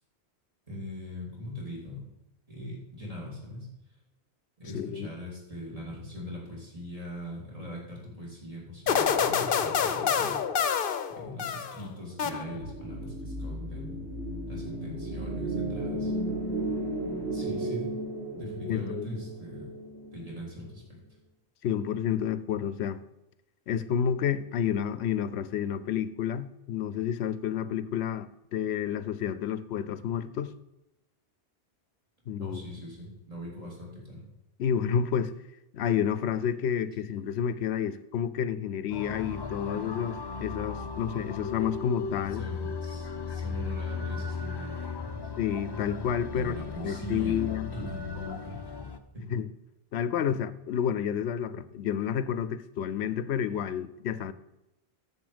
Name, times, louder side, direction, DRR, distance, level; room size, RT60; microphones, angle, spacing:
voice 1, 0.7-2.0 2.5-3.7 4.6-10.7 11.1-14.0 14.5-16.1 17.3-17.9 18.3-19.7 20.1-21.0 32.4-34.3 42.4-44.7 45.0-45.2 46.3-47.5 47.7-48.6 49.1-49.3, left 1 dB, 35° right, 3.6 m, -41 dB
voice 2, 4.7-5.1 18.7-19.1 21.6-23.0 23.7-30.5 32.3-32.6 34.6-35.3 35.7-42.5 45.4-46.5 46.8-47.9 49.3-49.5 49.9-54.3, left 8 dB, 90° left, 0.9 m, -30 dB
sound 1, 8.9-11.8 12.2-12.8, left 7 dB, 60° left, 0.8 m, -27 dB
sound 2, 12.3-20.7, right 1 dB, 85° right, 2.4 m, -34 dB
sound 3, 38.9-49.0, left 5 dB, 30° left, 0.6 m, -36 dB
9.9 x 7.0 x 5.1 m
omnidirectional pair, 1.1 m